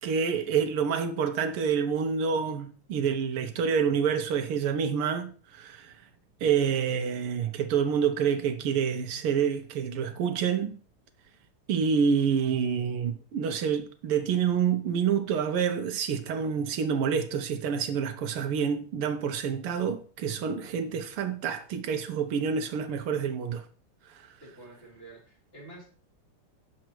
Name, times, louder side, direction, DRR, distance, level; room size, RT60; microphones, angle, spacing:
voice 1, 0.0-5.9 6.4-10.8 11.7-23.7, right 7 dB, 80° right, 1.7 m, -27 dB
voice 2, 24.4-25.8, right 2 dB, 25° left, 3.9 m, -48 dB
8.8 x 7.1 x 4.4 m
omnidirectional pair, 2.4 m